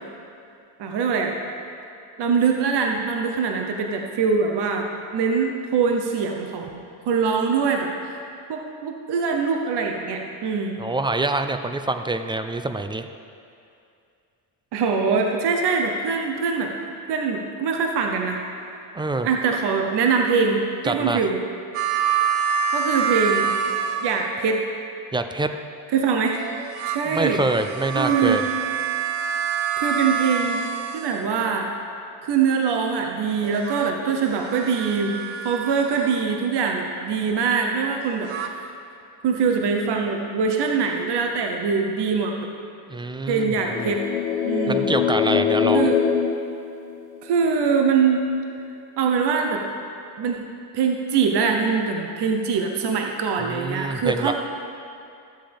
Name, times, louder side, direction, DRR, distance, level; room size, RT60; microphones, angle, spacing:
voice 1, 0.8-1.3 2.2-4.9 5.1-6.8 7.1-8.2 8.5-10.8 14.7-16.7 17.1-18.4 19.2-21.4 22.7-23.5 24.0-24.6 25.9-26.4 26.9-27.4 27.9-28.5 29.8-30.6 30.9-31.7 32.2-35.2 35.4-38.7 39.2-42.5 43.3-44.0 44.4-44.9 45.7-46.0 47.2-48.3 49.0-49.6 50.2-54.3, right 5 dB, 55° right, 2 dB, 1.0 m, -23 dB
voice 2, 10.8-13.1 18.9-19.3 20.8-21.2 25.1-25.5 27.1-28.4 42.9-43.9 44.7-45.9 53.4-54.3, right 2 dB, 10° right, 8 dB, 0.4 m, -25 dB
sound 1, 21.7-24.6 26.3-31.5 33.4-36.3 38.0-38.5, right 7 dB, 90° right, 0.8 m, -27 dB
sound 2, 43.5-47.4, left 7 dB, 90° left, 0.7 m, -23 dB
13.5 x 7.5 x 3.5 m, 2.5 s
supercardioid pair, 80°, 50 cm